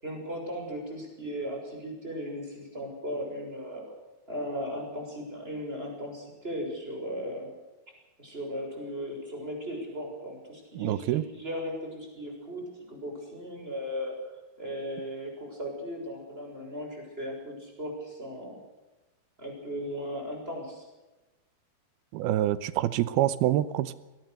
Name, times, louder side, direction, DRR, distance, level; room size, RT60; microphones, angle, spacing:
voice 1, 0.0-3.8 4.3-7.5 8.2-12.6 12.9-14.1 14.6-18.6 19.4-20.8, equal, 15° right, 2 dB, 6.7 m, -37 dB
voice 2, 10.8-11.2 22.1-24.0, right 13 dB, 80° right, 16 dB, 2.7 m, -26 dB
22.5 x 18.5 x 6.7 m, 1.1 s
omnidirectional pair, 4.6 m